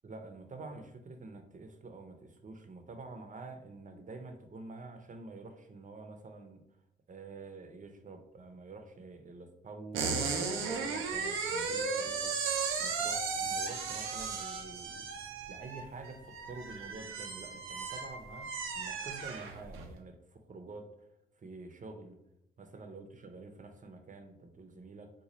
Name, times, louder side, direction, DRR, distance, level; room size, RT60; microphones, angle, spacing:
voice 1, 0.0-6.6 7.1-12.3 12.8-15.1 15.5-20.9 21.4-22.2 22.6-25.1, right 3 dB, 40° right, 5 dB, 0.6 m, -48 dB
sound 1, 9.9-19.9, right 5 dB, 85° right, 0.5 m, -35 dB
3.9 x 2.3 x 3.0 m, 0.84 s
supercardioid pair, 55°, 20 cm